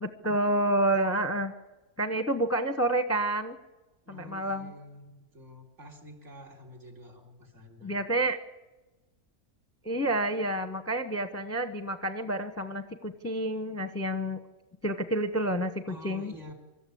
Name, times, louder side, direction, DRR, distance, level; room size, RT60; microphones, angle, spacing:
voice 1, 0.0-1.5 2.0-3.6 4.1-4.7 7.8-8.4 9.8-14.4 14.8-16.3, right 1 dB, 10° left, 8 dB, 0.8 m, -29 dB
voice 2, 4.1-8.0 15.9-16.5, equal, 50° right, 5 dB, 3.9 m, -48 dB
25.5 x 14.0 x 8.5 m, 1.1 s
omnidirectional pair, 1.6 m